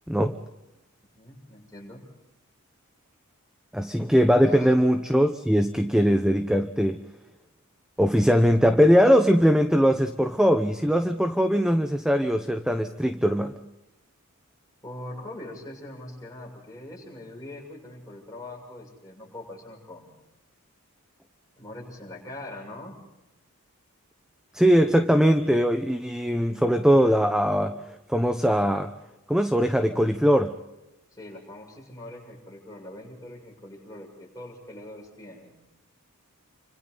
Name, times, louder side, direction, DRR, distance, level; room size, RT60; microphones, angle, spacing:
voice 1, 1.2-2.0 4.5-4.7 14.8-20.1 21.6-23.0 31.1-35.5, left 1 dB, 15° left, -2 dB, 7.0 m, -42 dB
voice 2, 3.7-7.0 8.0-13.6 24.5-27.8 28.1-28.9 29.3-30.6, equal, 5° right, 8 dB, 0.9 m, -21 dB
29.5 x 26.0 x 4.0 m, 0.92 s
head